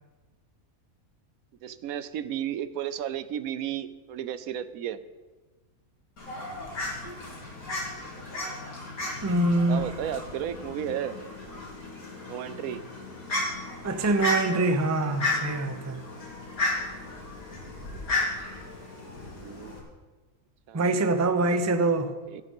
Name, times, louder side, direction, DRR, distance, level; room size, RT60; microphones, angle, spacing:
voice 1, 1.6-5.0 9.7-11.2 12.2-12.8 19.1-19.7 20.7-21.7 22.3-22.4, right 10 dB, 80° right, 1.1 m, -34 dB
Fowl, 6.2-19.8, left 2 dB, 90° left, 3.2 m, -34 dB
voice 2, 9.2-9.8 13.8-16.0 20.7-22.1, right 2 dB, 20° right, 0.5 m, -24 dB
17.0 x 6.6 x 5.4 m
omnidirectional pair, 1.5 m